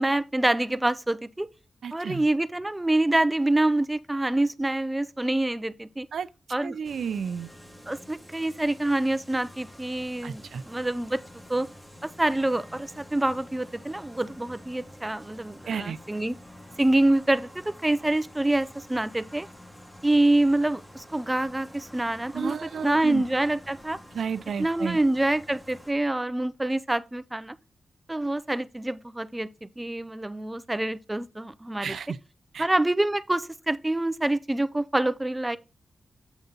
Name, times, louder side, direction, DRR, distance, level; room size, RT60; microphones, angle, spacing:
voice 1, 0.0-1.5 1.9-6.1 6.5-6.8 7.9-11.2 11.5-11.7 12.0-16.3 16.8-19.5 20.0-24.0 24.6-27.6 28.1-31.9 32.6-35.6, right 1 dB, 10° right, 0.4 m, -26 dB
voice 2, 1.8-2.2 6.1-6.3 6.6-7.5 10.2-10.6 15.7-16.0 22.3-23.2 24.1-25.0 31.8-32.2 32.5-32.7, right 7 dB, 80° right, 0.5 m, -32 dB
sound 1, 6.8-25.9, equal, 10° left, 1.4 m, -48 dB
8.0 x 4.0 x 3.7 m
wide cardioid pair, 165°, 0 cm